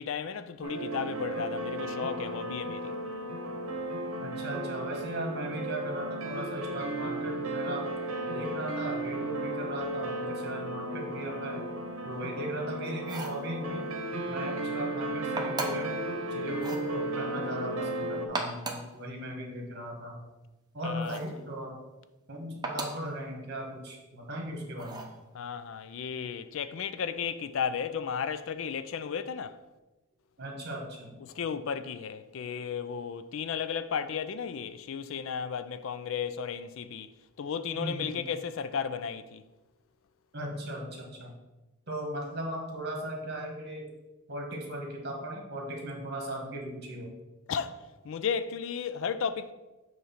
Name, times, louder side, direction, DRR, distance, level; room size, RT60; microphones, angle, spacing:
voice 1, 0.0-2.9 20.8-21.2 25.3-29.6 31.2-37.1 37.4-39.4 47.5-49.5, left 6 dB, 60° left, 0.3 m, -34 dB
sound 1, 0.6-18.3, right 1 dB, 70° right, 0.9 m, -35 dB
voice 2, 4.2-7.9 8.2-11.6 12.0-13.9 14.2-15.9 16.3-20.2 20.7-21.8 22.3-25.1 30.4-31.2 37.7-38.3 40.3-41.3 41.9-43.9 44.3-47.1, right 1 dB, 50° right, 1.4 m, -37 dB
sound 2, 13.0-13.4 15.4-15.9 16.5-16.9 18.2-18.9 21.0-21.4 22.6-23.1 24.8-25.2, right 3 dB, 20° right, 0.7 m, -36 dB
8.0 x 3.2 x 5.7 m
head